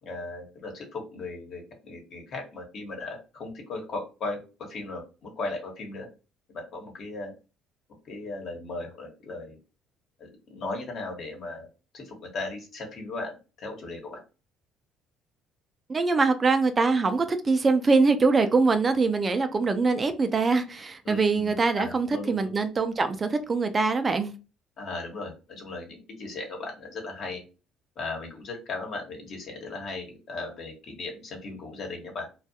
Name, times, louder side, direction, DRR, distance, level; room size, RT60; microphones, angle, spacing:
voice 1, 0.0-6.1 6.5-7.3 8.0-9.6 10.2-11.7 11.9-14.2 21.0-22.5 24.8-27.4 28.0-32.3, left 3 dB, 55° left, 2 dB, 1.1 m, -37 dB
voice 2, 15.9-24.3, right 4 dB, 30° right, 8 dB, 0.3 m, -23 dB
2.4 x 2.3 x 2.7 m, 0.32 s
cardioid pair, 95°, 0 cm